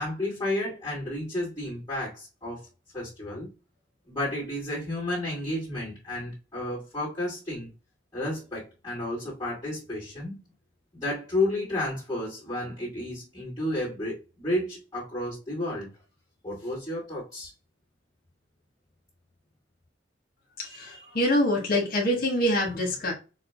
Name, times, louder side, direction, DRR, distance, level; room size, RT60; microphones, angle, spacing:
voice 1, 0.0-2.7 2.9-3.5 4.1-7.7 8.1-10.4 10.9-15.9 16.4-17.5, left 1 dB, 20° left, 2.2 m, -32 dB
voice 2, 20.6-23.1, left 1 dB, 50° left, 1.5 m, -25 dB
6.4 x 2.3 x 3.5 m
head